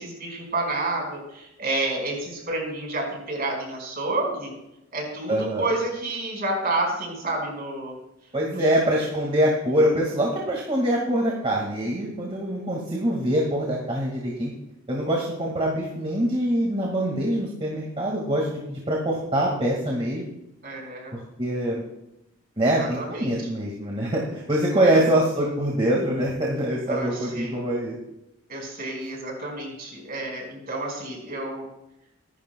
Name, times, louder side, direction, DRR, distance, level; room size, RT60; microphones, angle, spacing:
voice 1, 0.0-4.5 4.9-7.9 8.5-8.6 20.6-21.1 22.8-23.5 24.8-25.1 26.9-27.6 28.5-31.6, right 2 dB, 45° right, 0 dB, 5.0 m, -30 dB
voice 2, 5.3-5.7 8.3-14.5 14.9-20.3 21.1-21.8 22.6-28.0, right 1 dB, 25° right, -3 dB, 1.8 m, -24 dB
24.0 x 12.0 x 2.2 m, 0.88 s
head